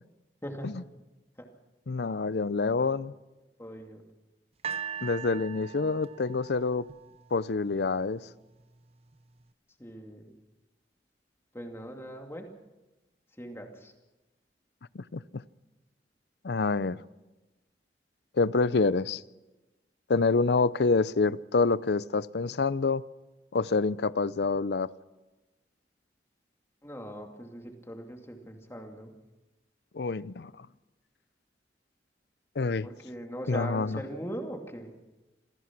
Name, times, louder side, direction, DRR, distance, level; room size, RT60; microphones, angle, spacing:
voice 1, 0.4-0.9 1.4-1.5 2.8-2.9 3.6-4.0 9.8-10.3 11.5-12.5 13.4-13.9 26.8-29.1 32.8-34.9, right 1 dB, 15° left, 3 dB, 2.4 m, -40 dB
voice 2, 1.9-3.1 5.0-6.9 7.3-8.2 14.9-15.4 16.4-17.0 18.4-19.2 20.1-23.0 23.5-24.9 29.9-30.5 32.6-32.9 33.5-34.0, left 4 dB, 65° left, 18 dB, 0.6 m, -27 dB
sound 1, 4.6-7.8 8.6-8.7, right 8 dB, 35° right, 0.8 m, -40 dB
27.0 x 16.0 x 6.0 m, 1.1 s
head